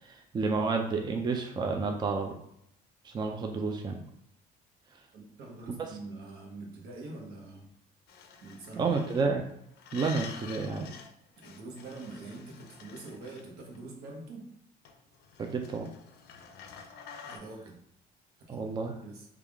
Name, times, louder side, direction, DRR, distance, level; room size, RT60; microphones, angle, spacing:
voice 1, 0.0-2.3 3.0-4.0 8.8-9.4 9.9-10.9 15.4-15.9 18.5-18.9, right 4 dB, 25° right, 4 dB, 0.4 m, -30 dB
voice 2, 5.1-7.7 8.4-8.9 11.4-14.5 17.2-17.8 18.4-18.6 19.0-19.3, right 3 dB, 75° right, 0 dB, 1.0 m, -44 dB
sound 1, 8.1-9.3 9.8-11.1 11.4-13.8 14.8-17.4, left 6 dB, 70° left, 0.5 m, -48 dB
3.4 x 2.3 x 3.5 m, 0.75 s
cardioid pair, 110°, 17 cm